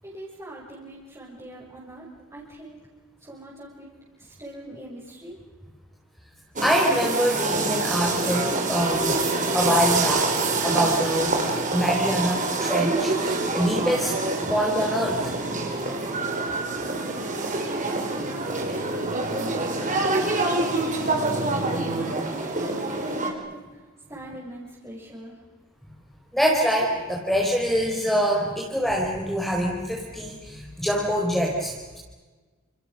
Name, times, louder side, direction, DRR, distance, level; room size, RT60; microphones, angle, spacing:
voice 1, 0.0-2.8 3.2-3.9 4.2-5.4 17.9-20.8 21.1-23.2 23.5-23.8 24.1-25.4, right 1 dB, 15° right, -7 dB, 6.8 m, -43 dB
voice 2, 6.6-9.3 9.5-10.3 10.6-11.4 11.7-14.2 14.5-15.3 26.3-32.0, equal, ahead, -2 dB, 4.5 m, -24 dB
sound 1, 6.6-23.3, right 3 dB, 35° right, 4.8 m, -26 dB
30.0 x 29.5 x 6.8 m, 1.3 s
head